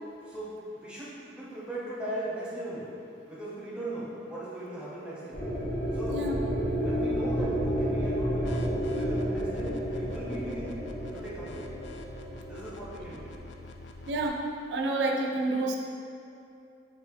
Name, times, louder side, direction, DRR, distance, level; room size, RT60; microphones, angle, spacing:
voice 1, 0.3-2.9 3.3-5.4 5.9-6.2 6.8-10.8 11.1-11.7 12.5-13.3, right 1 dB, 5° right, -8 dB, 0.8 m, -38 dB
sound 1, 5.3-13.4, equal, 60° left, 1.0 m, -31 dB
sound 2, 8.3-14.3, left 2 dB, 85° left, 0.3 m, -45 dB
voice 2, 14.1-14.4 14.7-15.8, right 2 dB, 75° right, 2 dB, 0.4 m, -28 dB
4.0 x 2.6 x 3.5 m, 2.6 s
head